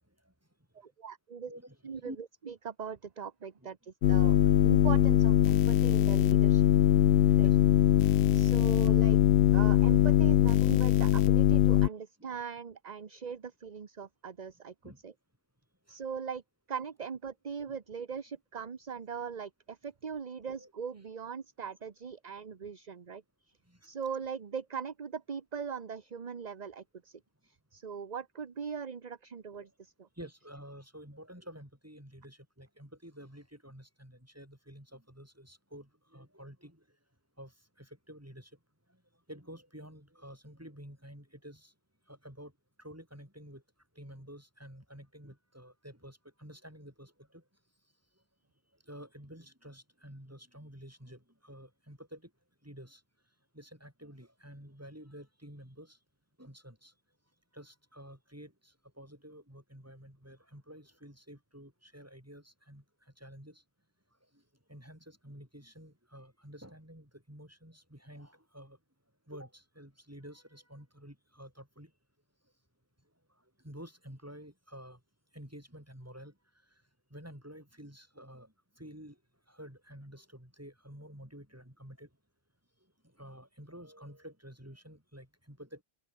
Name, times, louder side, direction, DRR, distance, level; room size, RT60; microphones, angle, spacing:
voice 1, 0.7-1.5 1.8-2.1 2.5-4.4 4.6-6.6 7.3-7.5 8.3-9.2 9.5-14.7 15.0-15.1 15.9-16.4 16.7-23.2 23.8-30.1, right 6 dB, 40° right, 1.1 m, -40 dB
voice 2, 1.5-2.2 3.6-3.7 7.4-8.1 14.8-15.0 15.9-16.0 17.7-17.8 20.6-20.7 23.7-23.8 29.6-29.7 30.2-36.8 37.4-37.5 37.8-38.5 39.3-41.7 42.1-42.5 42.8-43.6 44.0-47.4 48.9-52.3 52.6-53.0 53.5-56.0 56.4-56.9 57.5-62.8 63.2-63.6 64.7-68.8 69.3-71.9 73.6-75.0 75.3-76.3 77.1-79.2 79.5-82.1 83.2-85.8, equal, 15° right, 5.9 m, -50 dB
sound 1, 4.0-11.9, left 11 dB, 80° left, 0.9 m, -22 dB
open air
omnidirectional pair, 1.1 m